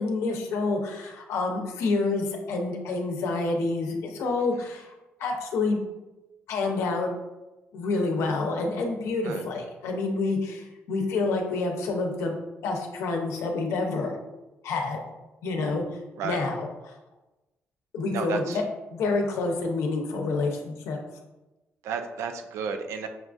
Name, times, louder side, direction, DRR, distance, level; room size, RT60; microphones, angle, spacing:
voice 1, 0.0-4.9 5.2-5.8 6.5-7.1 7.7-14.2 14.6-15.1 15.4-15.8 16.2-16.7 17.9-18.6 18.9-21.0, left 3 dB, 85° left, 2 dB, 0.7 m, -28 dB
voice 2, 18.1-18.6 21.8-23.1, right 6 dB, 85° right, 7 dB, 0.4 m, -32 dB
6.3 x 2.4 x 2.5 m, 1.0 s
cardioid pair, 165°, 5 cm